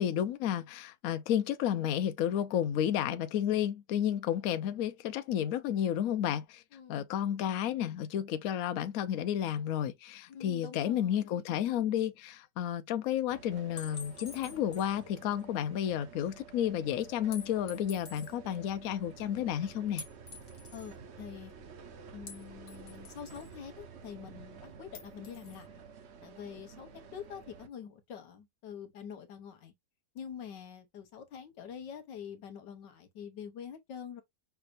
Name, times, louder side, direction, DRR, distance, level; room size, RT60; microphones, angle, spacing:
voice 1, 0.0-6.6 6.9-20.0, left 10 dB, 65° left, 0.9 m, -31 dB
voice 2, 6.7-7.1 10.3-11.2 20.7-21.5 22.1-25.8 26.2-29.7 30.1-34.2, left 8 dB, 90° left, 1.6 m, -46 dB
sound 1, 13.3-27.7, right 6 dB, 50° right, 0.9 m, -51 dB
sound 2, 13.8-15.0 15.4-15.5 17.3-18.3 20.0-20.9 22.3-23.6 24.9-25.6, left 4 dB, 45° left, 1.5 m, -48 dB
5.7 x 3.4 x 2.5 m
omnidirectional pair, 1.9 m